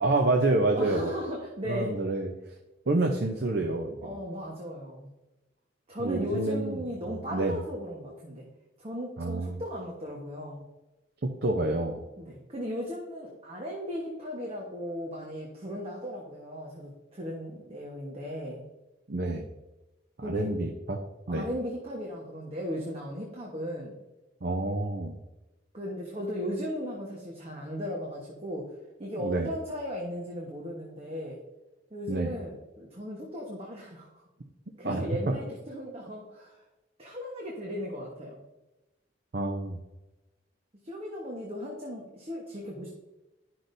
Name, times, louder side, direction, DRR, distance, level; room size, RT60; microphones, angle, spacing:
voice 1, 0.0-1.1 1.7-2.3 2.9-4.2 6.0-6.8 7.1-7.6 9.2-9.6 11.2-12.0 19.1-19.5 20.2-21.0 21.3-21.5 24.4-25.2 29.2-29.5 32.1-32.3 34.8-35.3 39.3-39.8, right 2 dB, 60° right, 3 dB, 0.7 m, -28 dB
voice 2, 0.7-1.9 4.0-5.1 5.9-8.5 8.8-10.6 12.2-18.6 20.2-20.6 21.3-24.0 25.7-31.4 31.9-34.1 34.8-36.6 37.0-38.4 40.8-42.9, equal, 35° right, -2 dB, 1.2 m, -36 dB
11.5 x 5.9 x 2.6 m, 1.0 s
head